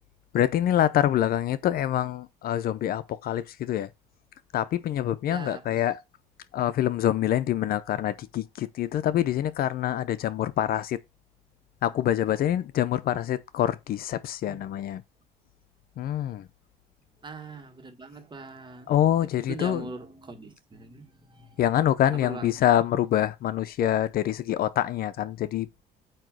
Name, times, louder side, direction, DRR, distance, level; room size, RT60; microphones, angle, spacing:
voice 1, 0.3-3.9 4.5-6.0 6.5-11.0 11.8-15.0 16.0-16.5 18.9-19.8 21.6-25.8, left 11 dB, 60° left, 0.7 m, -25 dB
voice 2, 5.3-5.8 14.4-14.6 17.2-18.9 19.2-21.6 22.1-22.5, right 3 dB, 25° right, 1.7 m, -41 dB
9.0 x 3.0 x 6.2 m
cardioid pair, 110°, 17 cm